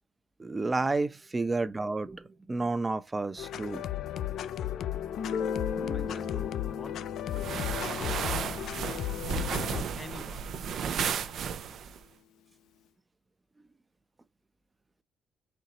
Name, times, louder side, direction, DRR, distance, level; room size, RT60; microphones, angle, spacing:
voice 1, 0.4-3.8 5.7-6.1, right 3 dB, 20° right, 0.6 m, -31 dB
sound 1, 3.4-9.8, left 11 dB, 75° left, 0.3 m, -35 dB
Guitar, 5.2-10.7, left 6 dB, 90° left, 0.7 m, -38 dB
voice 2, 5.9-9.1 10.0-11.3, left 2 dB, 20° left, 0.9 m, -49 dB
sound 2, 7.3-12.0, right 7 dB, 65° right, 0.5 m, -34 dB
4.5 x 2.9 x 3.9 m
cardioid pair, 90°, 0 cm